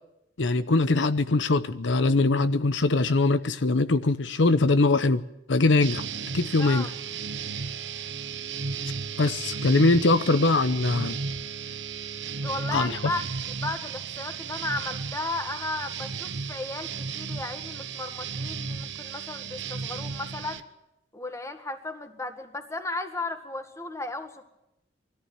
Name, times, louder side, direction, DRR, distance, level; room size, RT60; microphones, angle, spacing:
voice 1, 0.4-5.2 5.5-6.0 6.3-6.9 9.2-11.2 12.7-13.0, left 3 dB, 90° left, 12 dB, 0.8 m, -22 dB
sound 1, 5.8-20.6, right 5 dB, 75° right, 1.0 m, -34 dB
voice 2, 6.6-6.9 12.3-20.6 21.1-24.4, left 2 dB, 15° left, 6 dB, 1.8 m, -35 dB
21.0 x 14.0 x 9.1 m, 0.88 s
head